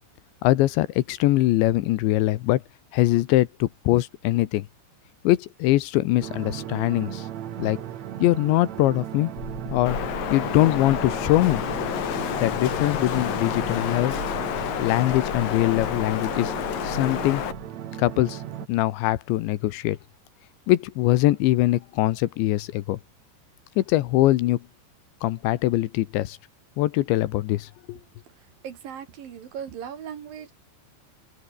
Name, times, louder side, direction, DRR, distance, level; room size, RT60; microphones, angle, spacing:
voice 1, 0.4-2.6 2.9-4.7 5.2-7.3 7.6-7.8 8.2-9.3 9.7-10.0 10.3-11.6 12.4-14.1 14.8-16.5 16.8-17.4 18.0-18.4 18.7-20.0 20.7-23.0 23.8-24.6 25.2-26.4 26.8-28.0, left 16 dB, 80° left, 3.2 m, -22 dB
sound 1, 6.2-18.7, right 11 dB, 70° right, 1.7 m, -37 dB
sound 2, 9.4-17.7, left 3 dB, 30° left, 7.7 m, -39 dB
Wind, 9.9-17.5, left 10 dB, 55° left, 3.2 m, -29 dB
voice 2, 28.6-30.5, right 8 dB, 55° right, 3.4 m, -37 dB
omnidirectional pair, 5.4 m